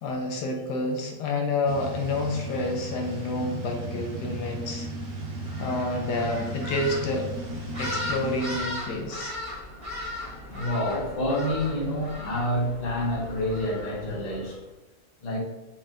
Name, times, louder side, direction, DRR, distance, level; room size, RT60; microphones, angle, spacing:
voice 1, 0.0-4.9 5.6-7.3 7.8-9.4, left 2 dB, 75° left, 2 dB, 1.2 m, -29 dB
sound 1, 1.7-8.6, right 1 dB, 75° right, 1.6 m, -35 dB
sound 2, 5.4-14.5, left 1 dB, 20° right, 1.2 m, -37 dB
voice 2, 10.5-14.6 15.2-15.4, left 1 dB, 30° left, -3 dB, 0.8 m, -28 dB
4.5 x 3.8 x 2.5 m, 1.1 s
omnidirectional pair, 1.9 m